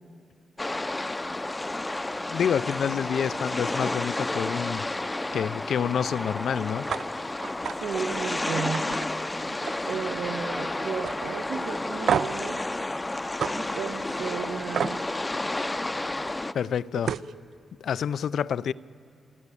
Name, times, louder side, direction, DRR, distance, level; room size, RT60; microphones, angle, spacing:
sound 1, 0.6-16.5, left 2 dB, 15° left, 0.5 m, -31 dB
voice 1, 2.3-4.9 5.3-6.9 9.4-9.5 16.5-17.1 17.8-18.7, left 8 dB, 75° left, 0.4 m, -28 dB
sound 2, 6.9-7.0 7.4-7.8 8.2-8.3 8.7-9.9 10.2-10.6 11.0-11.2 12.1-12.4 13.4-13.5 14.7-15.0 16.6-16.7 17.0-17.3, right 8 dB, 75° right, 0.4 m, -29 dB
voice 2, 7.7-9.0 9.5-9.6 9.9-12.6 13.4-15.0 17.1-17.2, right 7 dB, 90° right, 1.2 m, -34 dB
28.0 x 11.5 x 8.4 m
cardioid pair, 115°, 0 cm